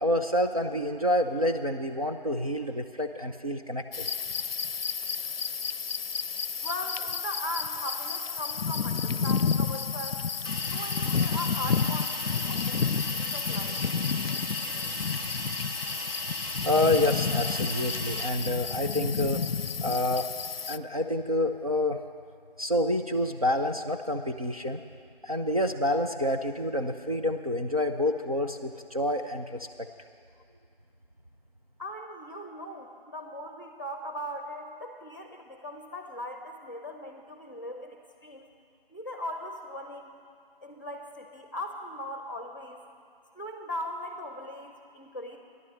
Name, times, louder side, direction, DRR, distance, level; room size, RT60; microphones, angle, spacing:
voice 1, 0.0-4.1 16.6-19.5 19.8-20.3 20.7-22.0 22.6-24.8 25.2-29.7, left 1 dB, 40° right, 2 dB, 0.6 m, -28 dB
sound 1, 3.9-20.8, left 6 dB, 75° left, 0.5 m, -31 dB
voice 2, 6.6-10.2 10.7-13.8 31.8-38.5 38.9-40.2 40.6-42.8 43.3-45.4, left 1 dB, 20° left, 3 dB, 0.9 m, -39 dB
Hiss, 10.4-18.3, left 1 dB, 25° right, 1.0 m, -37 dB
13.5 x 11.0 x 7.5 m, 2.4 s
figure-of-eight pair, 175°, 29 cm